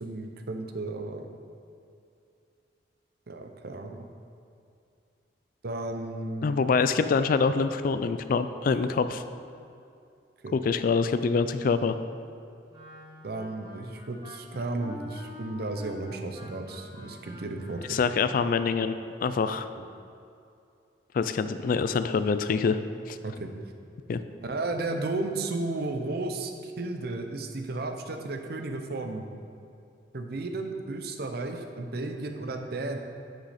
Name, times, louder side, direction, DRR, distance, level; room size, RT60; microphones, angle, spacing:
voice 1, 0.0-1.3 3.3-4.1 5.6-6.6 10.4-10.6 13.2-18.0 19.7-19.8 23.2-23.5 24.4-29.3 30.1-33.0, right 2 dB, 60° right, 5 dB, 0.7 m, -34 dB
voice 2, 6.4-9.2 10.5-12.0 17.9-19.0 19.2-19.7 21.1-22.8 23.1-23.2 24.1-24.2, left 5 dB, 50° left, 11 dB, 0.3 m, -25 dB
Wind instrument woodwind instrument, 12.7-18.4, left 1 dB, 25° right, 1.6 m, -46 dB
8.0 x 6.3 x 4.2 m, 2.5 s
head